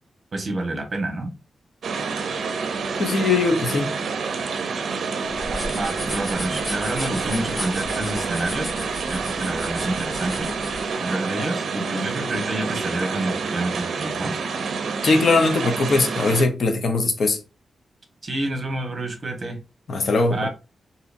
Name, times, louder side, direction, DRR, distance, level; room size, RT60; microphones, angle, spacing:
voice 1, 0.3-1.3 5.7-10.5 11.0-14.3 18.2-19.6 20.3-20.5, right 1 dB, 35° right, 1.1 m, -28 dB
sound 1, 1.8-16.4, right 5 dB, 70° right, 0.5 m, -28 dB
voice 2, 3.0-3.9 15.0-17.4 19.9-20.5, left 3 dB, 55° left, 0.7 m, -20 dB
sound 2, 5.3-10.9, left 1 dB, 20° left, 0.7 m, -35 dB
3.9 x 2.7 x 2.5 m
wide cardioid pair, 140°, 0 cm